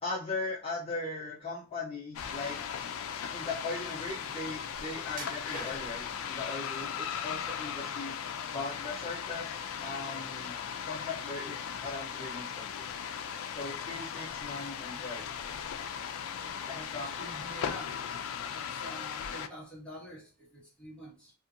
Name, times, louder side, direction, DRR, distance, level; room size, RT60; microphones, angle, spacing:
voice 1, 0.0-2.6 3.3-8.2 8.5-10.5 10.9-12.8 13.5-15.3 16.7-17.3, left 3 dB, 30° left, 0.7 m, -39 dB
sound 1, 2.2-19.5, left 8 dB, 80° left, 0.3 m, -38 dB
sound 2, 5.1-6.1 6.8-7.5 7.9-8.8 9.2-9.3 9.9-10.0, right 2 dB, 45° right, 1.0 m, -45 dB
voice 2, 16.4-17.9 18.5-21.3, equal, 5° left, 1.4 m, -48 dB
2.7 x 2.5 x 2.5 m
head